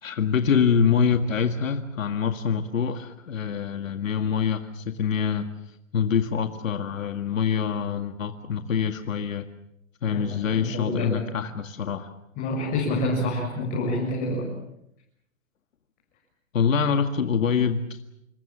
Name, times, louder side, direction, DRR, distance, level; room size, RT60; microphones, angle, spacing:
voice 1, 0.0-9.4 10.0-12.1 16.5-18.0, left 6 dB, 75° left, 7 dB, 2.0 m, -25 dB
voice 2, 10.6-11.2 12.4-14.5, left 1 dB, 25° left, -3 dB, 6.7 m, -27 dB
27.5 x 23.0 x 7.5 m, 0.79 s
hypercardioid pair, 155°, 40 cm